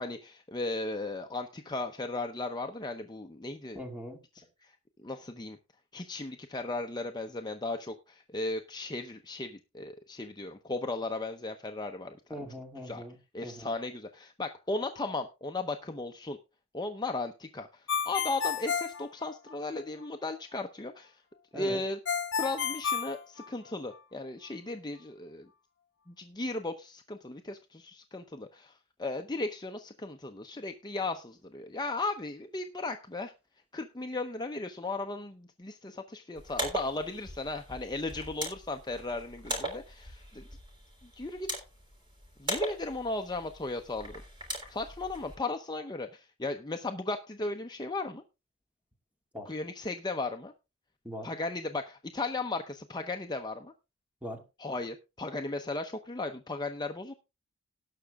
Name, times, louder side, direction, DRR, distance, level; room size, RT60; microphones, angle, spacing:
voice 1, 0.0-3.8 4.6-5.6 5.9-12.4 12.9-13.0 13.3-16.4 16.7-21.2 21.5-22.0 22.3-25.5 26.1-33.3 33.7-40.4 41.2-41.5 42.4-44.2 44.7-48.2 49.5-50.5 51.2-53.7 54.6-57.1, left 2 dB, 20° left, 5 dB, 0.7 m, -36 dB
voice 2, 3.7-4.2 12.3-13.7 21.5-21.8 49.3-49.5 51.0-51.3 54.2-54.4, equal, 5° right, 3 dB, 2.3 m, -41 dB
Ringtone, 17.9-19.8 22.1-23.9, left 7 dB, 60° left, 1.2 m, -32 dB
sound 1, 36.4-45.3, right 1 dB, 20° right, 5.0 m, -40 dB
18.5 x 6.2 x 3.6 m, 0.28 s
head